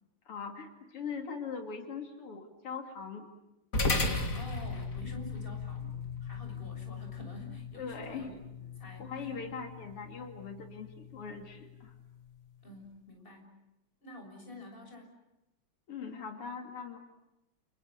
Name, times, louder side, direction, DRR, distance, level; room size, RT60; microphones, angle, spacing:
voice 1, 0.3-3.3 7.8-8.3 9.0-11.9 15.9-17.0, left 5 dB, 90° left, 4 dB, 3.6 m, -41 dB
sound 1, 3.7-12.4, left 3 dB, 40° left, 2.8 m, -37 dB
voice 2, 4.3-9.4 12.6-13.5 14.0-15.2, left 1 dB, 25° left, 3 dB, 7.0 m, -49 dB
30.0 x 29.5 x 6.8 m, 0.95 s
omnidirectional pair, 2.4 m